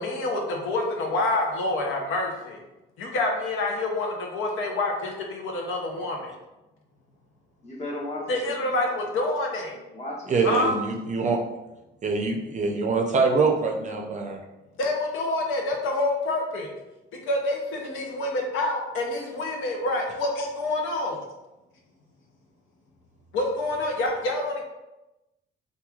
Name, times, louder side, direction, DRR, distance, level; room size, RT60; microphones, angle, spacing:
voice 1, 0.0-2.6 3.0-6.2 8.3-9.7 10.4-10.8 14.8-16.7 17.3-21.2 23.3-24.6, left 2 dB, 85° left, 1 dB, 0.6 m, -27 dB
voice 2, 7.6-8.9 9.9-10.7, left 1 dB, 35° left, -4 dB, 1.0 m, -36 dB
voice 3, 10.3-11.4 12.0-14.4, right 4 dB, 40° right, 2 dB, 0.4 m, -24 dB
3.0 x 2.2 x 2.3 m, 0.99 s
cardioid pair, 90°, 20 cm